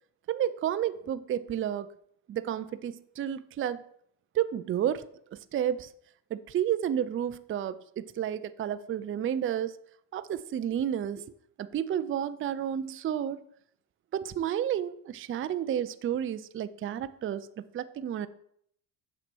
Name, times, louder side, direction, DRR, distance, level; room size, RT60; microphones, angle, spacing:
voice 1, 0.3-1.9 2.3-3.8 4.3-5.9 6.3-9.8 10.1-11.2 11.6-13.4 14.1-18.3, right 10 dB, 25° right, 14 dB, 0.4 m, -31 dB
7.6 x 6.0 x 4.4 m, 0.69 s
supercardioid pair, 80°, 48 cm